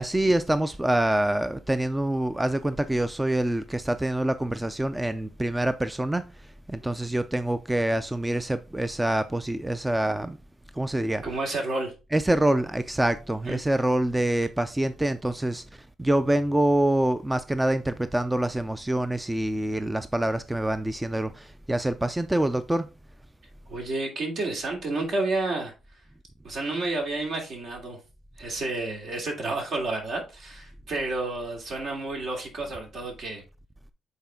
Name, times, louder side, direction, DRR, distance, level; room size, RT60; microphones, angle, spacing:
voice 1, 0.0-10.4 10.7-11.2 12.1-22.9, right 1 dB, 10° right, 0.4 m, -26 dB
voice 2, 11.2-11.9 13.5-13.6 23.7-25.7 26.4-28.0 28.4-33.4, right 2 dB, 65° right, 2.9 m, -30 dB
8.0 x 4.2 x 3.7 m
cardioid pair, 90°, 0 cm